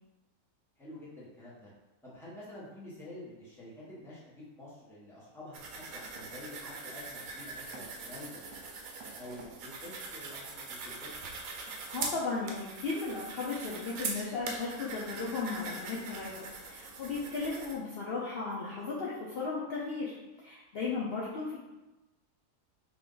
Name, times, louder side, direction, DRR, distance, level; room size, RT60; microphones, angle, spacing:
voice 1, 0.8-1.7 2.0-8.4 9.1-11.3 20.9-21.0, left 1 dB, ahead, -9 dB, 0.8 m, -48 dB
sound 1, 5.5-17.7, right 4 dB, 70° right, 1.0 m, -42 dB
voice 2, 11.6-21.6, left 4 dB, 70° left, -6 dB, 0.5 m, -36 dB
3.5 x 2.5 x 3.8 m, 1.0 s
omnidirectional pair, 1.8 m